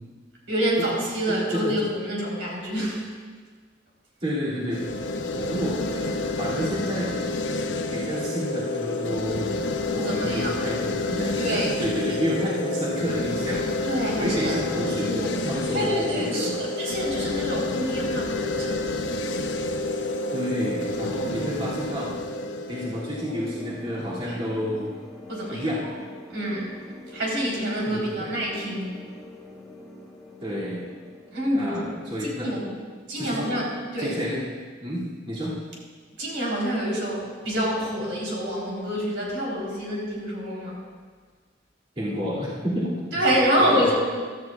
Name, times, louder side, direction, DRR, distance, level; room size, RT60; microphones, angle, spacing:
voice 1, 0.5-3.1 9.9-10.5 11.4-11.7 13.8-14.6 15.1-15.3 15.7-18.9 24.3-24.4 25.3-25.7 26.3-26.7 27.1-28.9 31.3-32.7 33.1-34.1 36.2-40.8 43.1-43.9, equal, 80° right, -4 dB, 3.7 m, -27 dB
voice 2, 1.3-1.7 4.2-4.8 5.3-6.1 6.4-7.2 7.9-13.6 14.2-16.6 20.3-22.1 22.7-25.0 25.5-25.8 27.8-28.3 30.4-30.8 31.5-32.5 33.1-33.5 34.0-34.5 34.8-35.6 42.0-43.2 43.6-43.9, equal, 30° right, -9 dB, 2.5 m, -30 dB
sound 1, 4.7-23.8, left 2 dB, 70° left, 0.7 m, -29 dB
sound 2, 23.2-32.4, left 2 dB, ahead, 1.6 m, -44 dB
16.0 x 13.0 x 2.4 m, 1.5 s
head